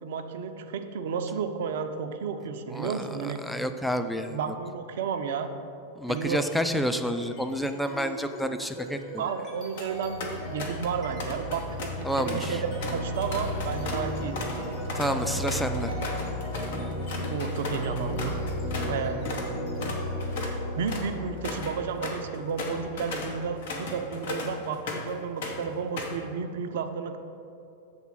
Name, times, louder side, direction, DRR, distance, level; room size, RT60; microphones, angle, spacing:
voice 1, 0.0-3.4 4.3-5.5 6.1-6.5 9.2-14.4 17.3-18.4 18.8-19.2 20.4-27.2, right 6 dB, 55° right, 7 dB, 0.5 m, -32 dB
voice 2, 2.7-4.4 6.0-9.0 12.0-12.6 15.0-15.9, equal, ahead, 7 dB, 0.4 m, -29 dB
sound 1, 6.1-6.6 7.0-23.6, left 1 dB, 35° left, 1.6 m, -35 dB
sound 2, 9.5-9.9 10.2-10.9 11.2-19.0 19.2-19.5 19.8-25.1 25.4-26.2, left 3 dB, 55° left, 0.9 m, -37 dB
7.1 x 3.6 x 5.7 m, 2.6 s
figure-of-eight pair, 90°, 0 cm